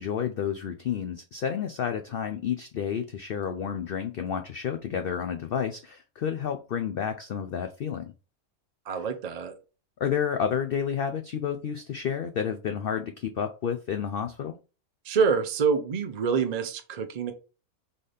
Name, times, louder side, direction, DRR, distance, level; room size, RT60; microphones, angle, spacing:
voice 1, 0.0-8.1 10.0-14.6, left 8 dB, 85° left, 7 dB, 0.5 m, -30 dB
voice 2, 8.9-9.6 15.0-17.3, right 6 dB, 50° right, 6 dB, 0.4 m, -26 dB
4.0 x 3.8 x 3.4 m, 0.33 s
omnidirectional pair, 1.6 m